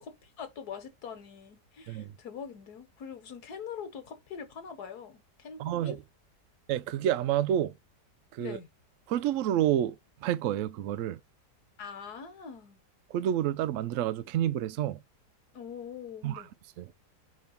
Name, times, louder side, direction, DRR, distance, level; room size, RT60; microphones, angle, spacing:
voice 1, 0.0-6.0 8.4-8.7 11.8-12.8 15.5-16.5, left 7 dB, 70° left, 1.7 m, -43 dB
voice 2, 5.6-6.0 6.7-7.7 8.3-8.6 9.1-10.0 10.2-11.2 13.1-15.0 16.2-16.5 16.8-16.9, right 11 dB, 70° right, 0.7 m, -29 dB
5.1 x 3.9 x 5.6 m
omnidirectional pair, 1.8 m